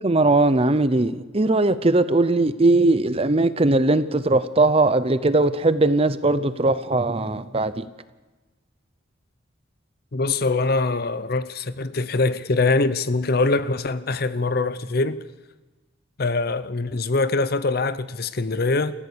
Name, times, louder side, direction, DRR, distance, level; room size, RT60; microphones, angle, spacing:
voice 1, 0.0-7.9, right 2 dB, 30° right, 0.7 m, -19 dB
voice 2, 10.1-15.2 16.2-18.9, left 3 dB, 50° left, 0.8 m, -23 dB
28.5 x 15.0 x 6.9 m
head